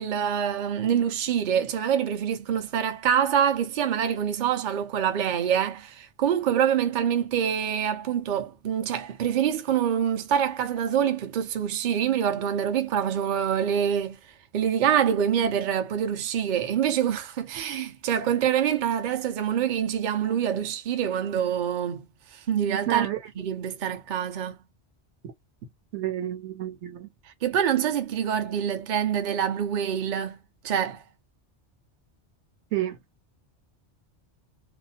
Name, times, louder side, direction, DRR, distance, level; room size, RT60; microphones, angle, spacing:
voice 1, 0.0-14.2 14.5-22.0 22.3-23.1 23.4-24.6 27.4-30.4 30.6-31.0, right 9 dB, 50° right, 0.7 m, -25 dB
voice 2, 22.9-23.2 25.9-27.1 32.7-33.0, right 12 dB, 80° right, 1.0 m, -30 dB
2.5 x 2.0 x 2.7 m
omnidirectional pair, 1.2 m